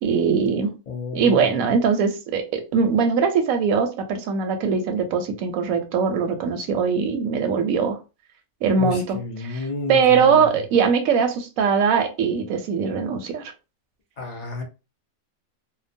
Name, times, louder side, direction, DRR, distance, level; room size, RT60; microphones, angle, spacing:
voice 1, 0.0-0.8 1.1-8.0 8.6-9.6 9.9-13.5, right 6 dB, 80° right, 1.0 m, -21 dB
voice 2, 0.9-1.5 8.8-10.6 14.2-14.6, left 3 dB, 45° left, 0.5 m, -31 dB
2.8 x 2.0 x 2.5 m
omnidirectional pair, 1.5 m